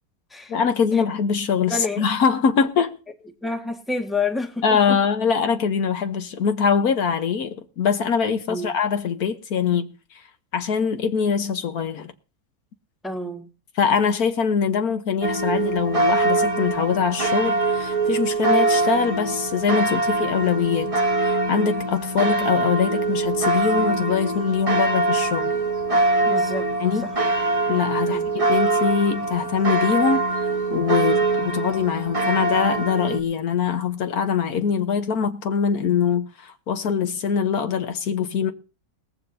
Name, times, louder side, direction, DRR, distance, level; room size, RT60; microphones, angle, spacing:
voice 1, 0.5-2.9 4.6-9.9 10.5-12.1 13.7-20.9 21.2-25.5 26.8-27.1 27.7-38.5, left 6 dB, 70° left, 1.6 m, -23 dB
voice 2, 1.7-2.0 3.4-4.6 8.5-8.7 13.0-13.5 26.2-26.7 27.0-27.1 28.1-28.3, left 3 dB, ahead, 1.6 m, -28 dB
sound 1, 15.2-33.2, right 2 dB, 25° right, 1.2 m, -23 dB
19.5 x 14.5 x 2.7 m
omnidirectional pair, 1.6 m